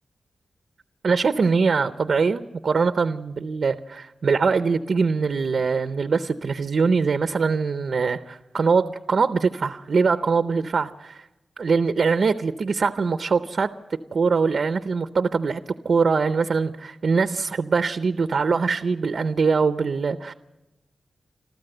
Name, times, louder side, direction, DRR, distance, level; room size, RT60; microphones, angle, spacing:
voice 1, 1.0-11.3 11.6-20.3, right 5 dB, 50° right, 10 dB, 0.6 m, -23 dB
26.0 x 14.5 x 7.8 m, 1.0 s
wide cardioid pair, 175°, 0 cm